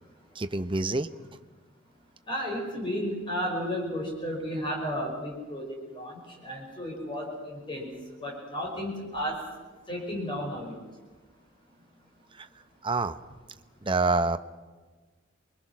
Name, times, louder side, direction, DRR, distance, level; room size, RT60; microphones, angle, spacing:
voice 1, 0.4-1.1 12.8-13.2 13.9-14.4, right 3 dB, 25° right, 10 dB, 0.9 m, -26 dB
voice 2, 2.3-7.9 8.2-9.4 9.9-10.8, equal, 25° left, 0 dB, 5.5 m, -33 dB
28.0 x 22.5 x 6.1 m, 1.3 s
head